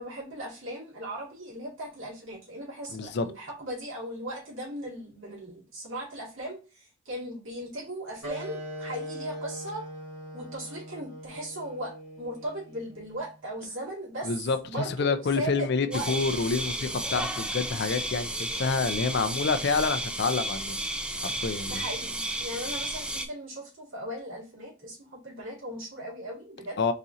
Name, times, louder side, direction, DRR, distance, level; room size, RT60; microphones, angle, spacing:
voice 1, 0.0-9.9 10.3-14.4 14.7-16.1 21.7-26.8, right 1 dB, 70° right, 2.3 m, -38 dB
voice 2, 2.9-3.3 14.2-20.8 21.2-21.8 26.8-26.9, left 4 dB, 55° left, 0.5 m, -28 dB
sound 1, 8.2-13.3, right 1 dB, 85° right, 2.0 m, -41 dB
sound 2, 15.9-23.3, right 1 dB, 5° right, 0.4 m, -33 dB
4.1 x 2.8 x 3.7 m
head